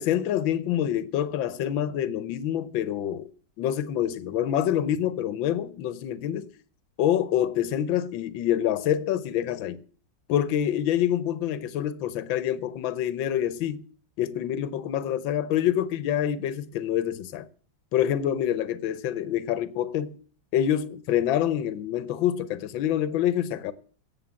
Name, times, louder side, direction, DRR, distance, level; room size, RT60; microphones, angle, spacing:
voice 1, 0.0-3.3 3.6-6.5 7.0-9.8 10.3-13.9 14.2-17.5 17.9-20.2 20.5-23.7, left 10 dB, 80° left, 1.6 m, -26 dB
17.0 x 7.5 x 7.5 m
omnidirectional pair, 2.1 m